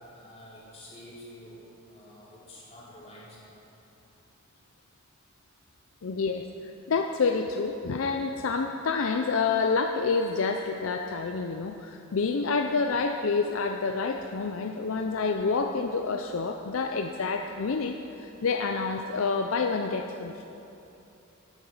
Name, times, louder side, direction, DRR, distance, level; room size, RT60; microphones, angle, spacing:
voice 1, 0.1-3.5, left 1 dB, 30° left, -7 dB, 3.3 m, -48 dB
voice 2, 6.0-20.5, left 4 dB, 65° left, 5 dB, 0.5 m, -28 dB
13.5 x 8.9 x 5.6 m, 2.9 s
head